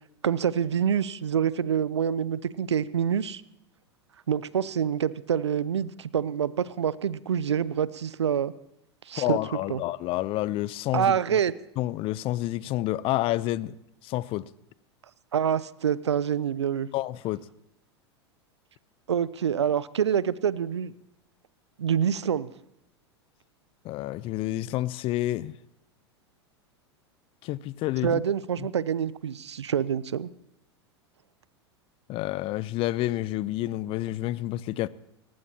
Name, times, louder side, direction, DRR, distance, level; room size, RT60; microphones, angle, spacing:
voice 1, 0.2-3.4 4.3-8.5 9.1-9.8 10.9-11.5 15.3-16.9 19.1-20.9 21.8-22.5 28.0-30.3, right 8 dB, 80° right, 0.7 m, -26 dB
voice 2, 9.2-11.4 11.8-13.8 14.0-14.5 16.9-17.4 23.8-25.5 27.4-28.2 28.6-28.7 32.1-34.9, left 16 dB, 40° left, 0.6 m, -29 dB
29.5 x 15.0 x 2.9 m
figure-of-eight pair, 90°, 14 cm